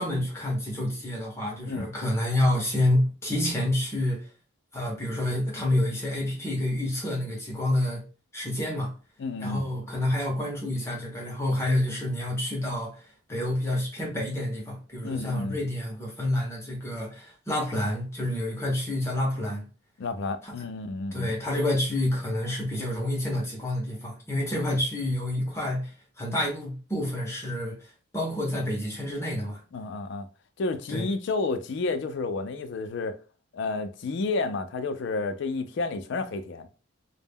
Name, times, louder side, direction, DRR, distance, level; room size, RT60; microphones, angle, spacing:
voice 1, 0.0-4.3 4.7-8.0 8.3-8.9 9.4-13.0 13.3-19.6 20.4-20.5 21.1-29.6 30.9-31.1, left 1 dB, 15° left, 0.6 m, -28 dB
voice 2, 9.2-9.7 15.0-15.6 20.0-21.3 29.7-30.3 30.6-33.2 33.5-36.7, left 3 dB, 60° left, 0.4 m, -31 dB
2.1 x 2.1 x 3.4 m
head